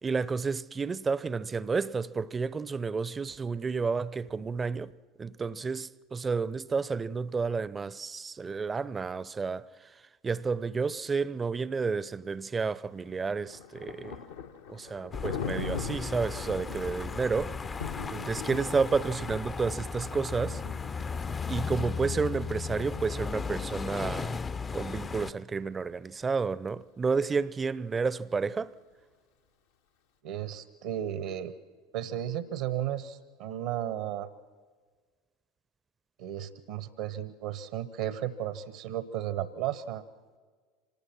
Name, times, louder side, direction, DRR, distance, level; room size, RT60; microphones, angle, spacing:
voice 1, 0.0-4.9 5.2-9.9 10.2-14.2 14.7-17.5 18.1-20.6 21.5-24.4 24.7-28.7, right 4 dB, 25° right, 0.6 m, -31 dB
Thunder, 13.1-24.8, left 6 dB, 75° left, 1.4 m, -42 dB
sound 1, 15.1-25.3, left 5 dB, 25° left, 0.6 m, -36 dB
voice 2, 30.2-31.5 31.9-34.3 36.2-40.0, right 11 dB, 70° right, 1.0 m, -34 dB
25.5 x 19.0 x 6.0 m
hypercardioid pair, 75°, 0 cm